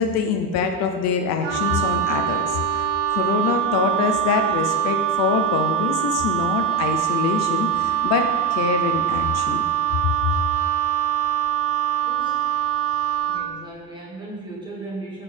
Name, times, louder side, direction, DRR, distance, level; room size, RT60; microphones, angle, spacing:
voice 1, 0.0-9.6, left 6 dB, 60° left, 5 dB, 0.6 m, -24 dB
sound 1, 0.5-5.6, left 4 dB, 10° left, 1.6 m, -37 dB
Wind instrument woodwind instrument, 1.4-13.5, right 12 dB, 85° right, 0.6 m, -23 dB
voice 2, 12.1-12.4 13.2-15.2, right 2 dB, 15° right, -4 dB, 1.3 m, -36 dB
6.2 x 5.8 x 3.3 m, 1.4 s
cardioid pair, 150°, 30 cm